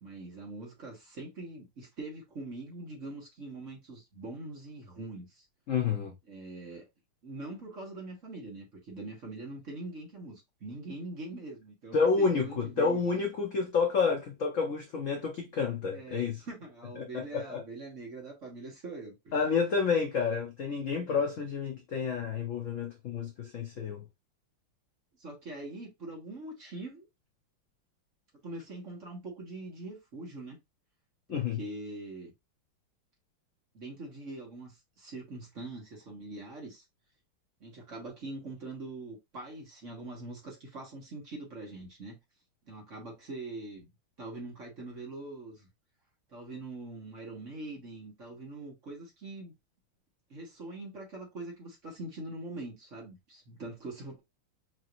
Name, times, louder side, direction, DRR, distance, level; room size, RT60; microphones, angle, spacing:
voice 1, 0.0-5.4 6.3-6.9 7.2-13.1 15.9-19.4 25.2-27.1 28.4-30.6 31.3-32.3 33.7-36.8 37.6-42.2 42.7-43.9 44.2-45.7 46.3-49.5 50.3-54.2, right 2 dB, 40° right, 1.7 m, -43 dB
voice 2, 5.7-6.1 11.9-16.4 17.0-17.6 19.3-24.0 31.3-31.6, left 5 dB, 80° left, 0.7 m, -29 dB
4.9 x 3.0 x 2.5 m
omnidirectional pair, 2.3 m